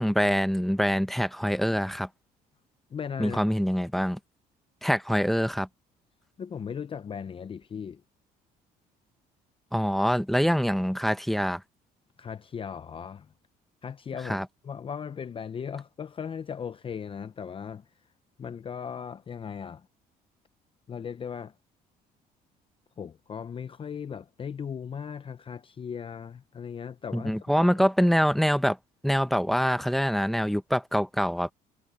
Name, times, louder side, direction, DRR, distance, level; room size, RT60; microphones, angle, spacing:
voice 1, 0.0-2.1 3.2-4.2 4.8-5.7 9.7-11.6 14.3-14.4 27.1-28.8 29.0-31.5, equal, ahead, 1.0 m, -25 dB
voice 2, 2.9-3.5 6.4-8.0 12.2-13.3 13.8-17.9 18.4-19.9 20.9-21.5 23.0-27.8, left 7 dB, 30° left, 0.6 m, -37 dB
cardioid pair, 110°, 17 cm